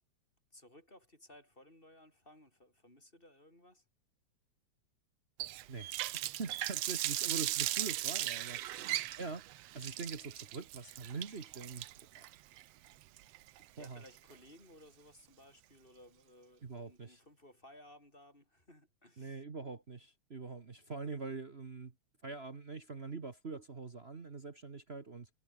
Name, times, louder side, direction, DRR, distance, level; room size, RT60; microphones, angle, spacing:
voice 1, 0.5-3.8 7.8-9.2 13.8-19.4, left 1 dB, 15° left, 7.8 m, -59 dB
Water tap faucet, 5.4-14.3, right 15 dB, 70° right, 1.7 m, -38 dB
voice 2, 5.7-8.6 9.2-9.4 9.7-11.8 12.2-12.3 13.8-14.0 16.6-17.2 19.2-21.9 22.2-25.3, right 4 dB, 45° right, 0.8 m, -44 dB
omnidirectional pair, 3.3 m